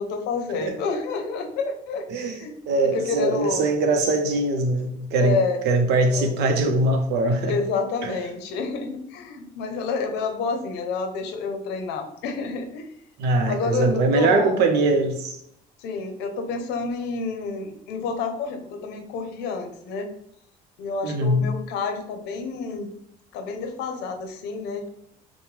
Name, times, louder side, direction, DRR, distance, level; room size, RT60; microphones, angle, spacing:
voice 1, 0.0-2.6 2.8-3.6 5.2-5.6 6.0-6.3 7.4-12.9 13.5-14.7 15.8-20.1 20.8-23.0 23.3-24.9, left 4 dB, 90° left, 0.8 m, -29 dB
voice 2, 2.7-5.4 5.6-7.6 8.0-8.1 13.2-15.4 21.0-21.5, right 2 dB, 85° right, 0.8 m, -22 dB
6.2 x 2.2 x 3.3 m
cardioid pair, 110°, 17 cm